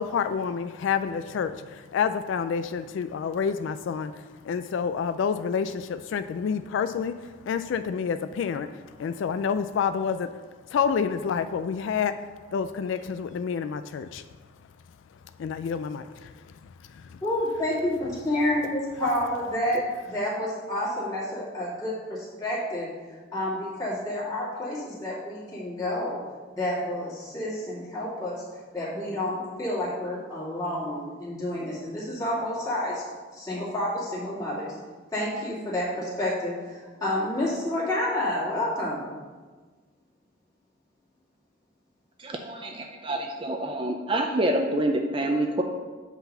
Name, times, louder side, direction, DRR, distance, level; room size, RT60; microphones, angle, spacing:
voice 1, 0.0-10.3 10.7-12.1 12.5-14.2 15.4-16.3 16.6-17.2, left 6 dB, 75° left, 10 dB, 0.3 m, -28 dB
voice 2, 17.2-26.2 26.5-28.4 28.7-33.0 33.3-34.7 35.1-39.0, left 1 dB, 20° left, -8 dB, 2.3 m, -29 dB
voice 3, 42.2-45.6, right 1 dB, 25° right, 3 dB, 0.4 m, -27 dB
8.2 x 3.9 x 5.4 m, 1.4 s
head